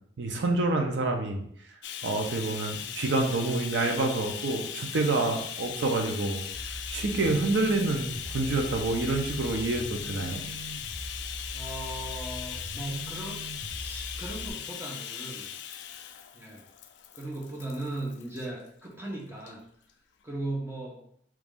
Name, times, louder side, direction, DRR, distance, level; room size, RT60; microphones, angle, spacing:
voice 1, 0.2-1.4 2.0-6.4 6.9-10.4, right 2 dB, 75° right, 3 dB, 0.6 m, -27 dB
Bathtub (filling or washing), 1.8-18.5 19.4-19.5 19.9-20.0, left 9 dB, 70° left, 0.3 m, -39 dB
sound 1, 6.5-14.5, right 1 dB, 60° right, 1.0 m, -41 dB
voice 2, 11.5-13.4 13.7-15.5 16.3-16.7 17.1-19.6 20.2-21.0, right 1 dB, 15° right, -2 dB, 0.6 m, -37 dB
3.1 x 2.5 x 3.5 m, 0.67 s
head